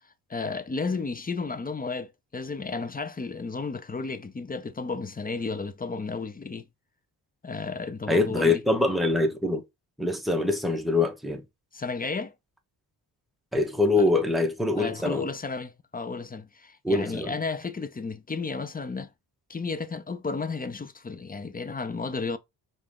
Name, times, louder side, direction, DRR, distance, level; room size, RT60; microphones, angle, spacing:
voice 1, 0.3-6.7 7.4-8.6 11.7-12.3 13.9-14.1 14.8-19.1 19.5-22.4, left 4 dB, 20° left, 0.6 m, -33 dB
voice 2, 8.1-9.6 10.0-11.4 13.5-15.3 16.8-17.3, left 2 dB, ahead, 1.1 m, -24 dB
4.8 x 2.6 x 3.6 m
cardioid pair, 70°, 43 cm